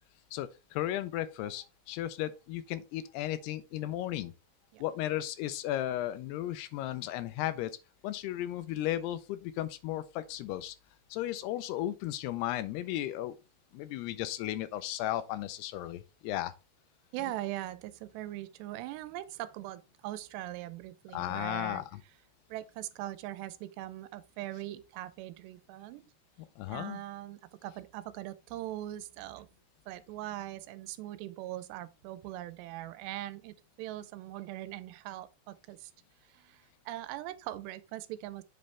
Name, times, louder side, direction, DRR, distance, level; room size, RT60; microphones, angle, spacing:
voice 1, 0.3-4.3 4.8-7.7 8.0-10.8 11.1-13.4 13.7-16.5 21.1-22.0 26.6-27.0, left 13 dB, 80° left, 2.6 m, -35 dB
voice 2, 17.1-21.8 22.5-26.1 26.7-29.5 29.9-35.9 36.3-38.4, right 14 dB, 85° right, 2.8 m, -41 dB
7.8 x 5.2 x 3.3 m
omnidirectional pair, 4.8 m